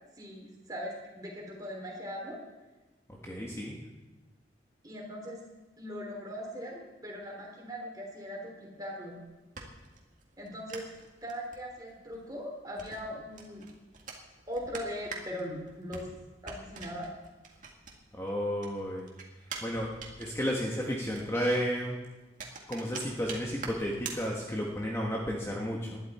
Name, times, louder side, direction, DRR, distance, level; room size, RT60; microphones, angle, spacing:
voice 1, 0.2-2.4 4.8-5.4 5.8-9.2 10.4-10.9 11.2-13.6 14.5-16.1 16.4-17.1, equal, 20° right, -1 dB, 3.7 m, -40 dB
voice 2, 3.2-3.7 18.1-19.1 19.6-19.9 20.2-22.0 22.7-26.0, equal, 15° left, -2 dB, 1.5 m, -32 dB
sound 1, 9.1-18.3 18.6-24.8, right 4 dB, 45° right, 2.2 m, -46 dB
19.5 x 11.5 x 4.4 m, 1.1 s
head